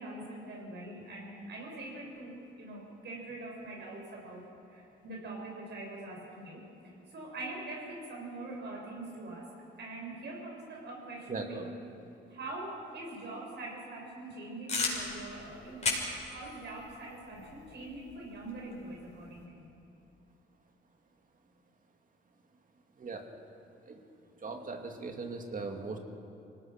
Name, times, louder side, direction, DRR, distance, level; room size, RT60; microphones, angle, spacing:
voice 1, 0.0-9.5 9.8-11.7 12.3-19.7, right 2 dB, 60° right, -1 dB, 6.6 m, -43 dB
voice 2, 11.3-11.7 23.0-23.3 23.8-24.0 24.4-26.0, right 4 dB, 45° right, 4 dB, 2.5 m, -39 dB
sound 1, 14.7-19.5, left 3 dB, 35° left, 6.1 m, -38 dB
25.5 x 18.5 x 6.1 m, 2.7 s
cardioid pair, 90°, 20 cm